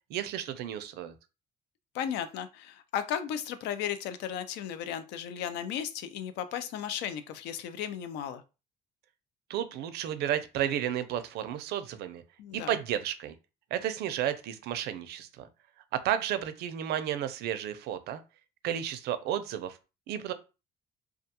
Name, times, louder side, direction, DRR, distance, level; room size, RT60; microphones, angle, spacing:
voice 1, 0.1-1.2 9.5-12.2 12.5-13.4 13.7-15.5 15.9-18.2 18.6-19.8 20.1-20.3, right 10 dB, 75° right, 11 dB, 0.4 m, -32 dB
voice 2, 1.9-8.4 12.4-12.8, left 9 dB, 85° left, 10 dB, 0.4 m, -35 dB
2.3 x 2.2 x 2.7 m, 0.30 s
cardioid pair, 110°, 17 cm